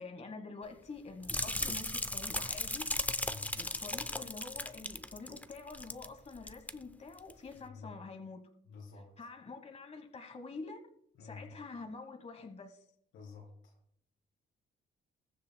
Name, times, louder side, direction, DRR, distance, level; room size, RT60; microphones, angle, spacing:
voice 1, 0.0-2.9 3.5-8.4 9.2-10.9 11.2-12.8, left 4 dB, 35° left, 1.2 m, -47 dB
sound 1, 1.2-6.1 6.3-6.7 7.2-7.3, left 1 dB, 10° left, 0.6 m, -36 dB
voice 2, 3.2-3.6 7.6-8.0 8.6-9.3 11.2-11.5 13.1-13.8, left 4 dB, 85° left, 3.7 m, -50 dB
20.5 x 7.3 x 2.2 m
cardioid pair, 90°, 20 cm